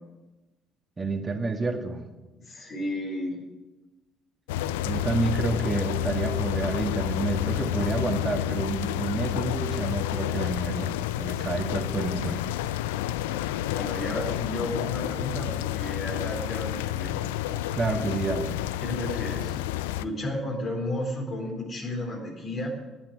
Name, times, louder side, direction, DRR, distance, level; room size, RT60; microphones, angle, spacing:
voice 1, 1.0-2.0 4.8-10.9 11.2-12.4 17.7-18.5, right 3 dB, 30° right, 5 dB, 1.9 m, -29 dB
voice 2, 2.4-3.4 13.7-17.1 17.5-17.6 18.8-19.5 19.9-22.7, left 1 dB, 45° left, 0 dB, 3.9 m, -33 dB
sound 1, 4.5-20.0, left 14 dB, 80° left, 0.4 m, -30 dB
11.5 x 8.8 x 7.6 m, 1.1 s
hypercardioid pair, 55°, 0 cm